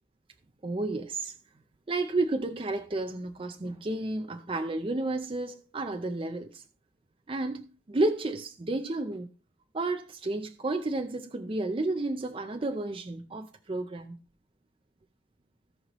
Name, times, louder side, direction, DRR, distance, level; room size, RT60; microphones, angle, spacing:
voice 1, 0.6-1.4 1.9-6.6 7.3-9.3 9.7-14.2, right 2 dB, 30° right, 0.5 m, -31 dB
17.0 x 5.7 x 3.0 m
head